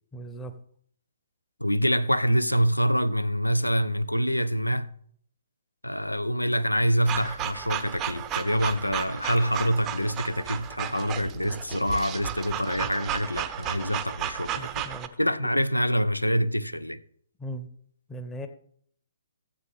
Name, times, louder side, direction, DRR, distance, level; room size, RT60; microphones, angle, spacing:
voice 1, 0.1-0.5 14.6-15.1 17.4-17.7 18.1-18.5, right 1 dB, 10° left, 0.9 m, -37 dB
voice 2, 1.6-4.9 5.8-14.9 15.2-17.0, equal, 85° left, 0.6 m, -26 dB
sound 1, 7.0-15.1, right 11 dB, 20° right, 0.7 m, -34 dB
14.5 x 8.2 x 3.5 m
figure-of-eight pair, 125°, 0 cm